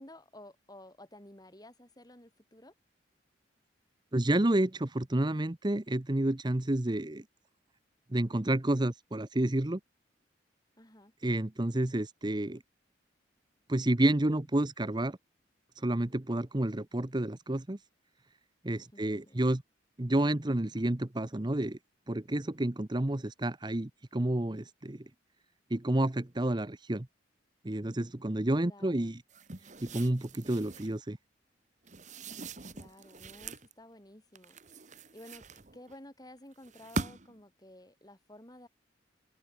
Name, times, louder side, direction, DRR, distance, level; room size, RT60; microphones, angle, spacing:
voice 1, 0.0-2.7 10.8-11.1 18.7-19.4 28.6-29.2 32.7-34.6 35.1-38.7, left 1 dB, 20° left, 5.8 m, -53 dB
voice 2, 4.1-7.2 8.1-9.8 11.2-12.6 13.7-15.2 15.8-17.8 18.6-19.6 20.0-21.8 22.1-25.0 25.7-27.1 27.6-29.2 29.8-31.2, right 1 dB, 25° right, 0.9 m, -30 dB
sound 1, 29.3-31.0 31.9-33.7 34.4-36.0 36.6-37.4, right 3 dB, 40° right, 1.8 m, -42 dB
head